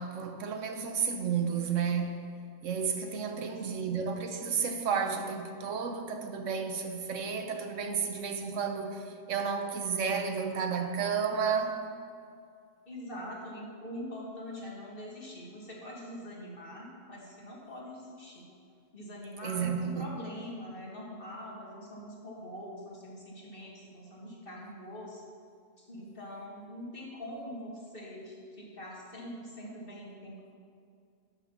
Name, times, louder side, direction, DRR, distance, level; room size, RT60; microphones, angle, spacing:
voice 1, 0.0-2.3 2.6-11.8 19.4-20.1, right 6 dB, 80° right, 1.2 m, -32 dB
voice 2, 3.1-3.9 12.9-18.4 18.9-25.2 25.8-30.6, equal, 45° left, 2.3 m, -43 dB
11.5 x 6.0 x 5.8 m
omnidirectional pair, 1.3 m